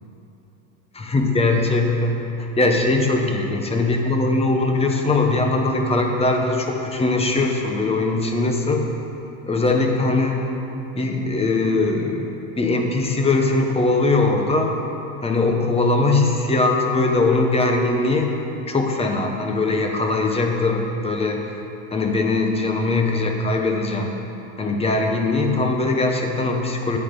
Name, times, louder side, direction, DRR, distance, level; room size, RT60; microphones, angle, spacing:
voice 1, 0.9-2.3 2.6-8.8 9.5-10.4 10.9-14.8 15.2-18.3 18.7-21.4 21.9-24.2 24.6-27.0, left 2 dB, 15° left, 2 dB, 1.0 m, -21 dB
10.5 x 8.4 x 5.3 m, 2.8 s
cardioid pair, 140°, 40 cm